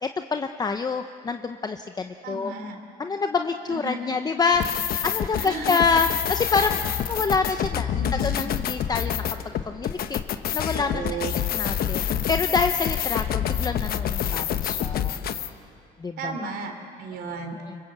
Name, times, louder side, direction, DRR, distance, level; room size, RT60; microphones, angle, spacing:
voice 1, 0.0-2.5 3.0-9.2 9.7-11.0 11.5-12.0 12.3-15.2 16.0-16.5 17.7-17.8, left 4 dB, 25° left, 7 dB, 0.8 m, -27 dB
voice 2, 2.2-2.8 3.7-4.2 5.3-5.9 8.0-8.5 10.7-11.3 16.2-17.6, right 4 dB, 75° right, 4 dB, 3.8 m, -34 dB
sound 1, 4.5-15.5, left 10 dB, 60° left, 1.2 m, -27 dB
26.0 x 24.0 x 8.0 m, 2.4 s
cardioid pair, 110°, 17 cm